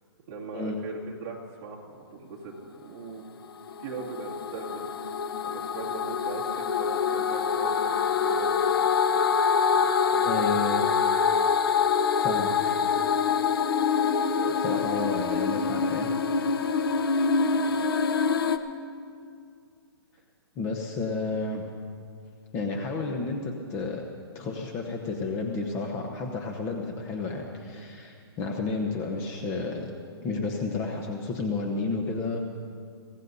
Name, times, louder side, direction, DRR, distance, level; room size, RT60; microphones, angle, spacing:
voice 1, 0.3-3.3 3.8-4.8 5.4-8.6 9.7-10.9 14.2-14.5 14.8-15.1 17.4-17.8, right 4 dB, 30° right, -3 dB, 2.3 m, -40 dB
sound 1, 3.4-18.6, left 6 dB, 60° left, 0.9 m, -25 dB
voice 2, 10.2-10.8 12.2-12.8 14.6-16.1 20.6-21.6 22.5-24.0 24.3-29.9 30.2-32.4, left 3 dB, 20° left, 2 dB, 0.9 m, -31 dB
23.0 x 16.5 x 2.7 m, 2.2 s
hypercardioid pair, 160°, 14 cm